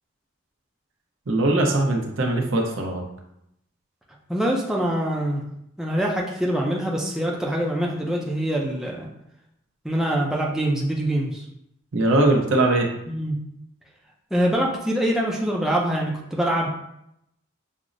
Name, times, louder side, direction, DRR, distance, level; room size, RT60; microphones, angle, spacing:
voice 1, 1.3-3.0 11.9-12.9, right 2 dB, 80° right, 1 dB, 0.7 m, -21 dB
voice 2, 4.3-5.4 5.8-9.1 9.8-11.4 13.1-13.4 14.3-16.7, right 1 dB, 5° right, -2 dB, 0.4 m, -24 dB
6.0 x 2.0 x 2.5 m, 0.79 s
head